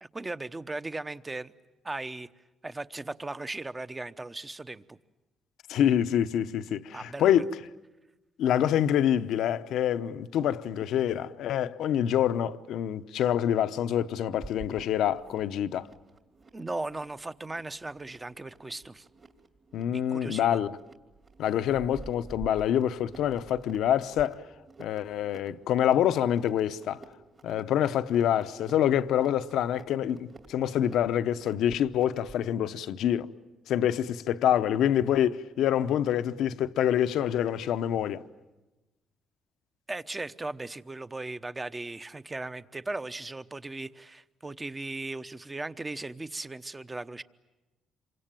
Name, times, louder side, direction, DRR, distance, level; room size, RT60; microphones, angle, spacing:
voice 1, 0.0-1.5 1.8-2.3 2.6-5.0 6.9-7.4 16.5-19.1 19.9-20.6 39.9-47.2, right 2 dB, 20° right, 1.0 m, -37 dB
voice 2, 5.7-7.5 8.4-15.9 19.7-20.7 21.4-24.4 24.8-27.0 27.4-33.3 33.7-38.2, left 10 dB, 80° left, 0.8 m, -26 dB
sound 1, 14.4-32.4, right 3 dB, 40° right, 2.8 m, -50 dB
27.0 x 24.5 x 9.0 m
cardioid pair, 90°, 0 cm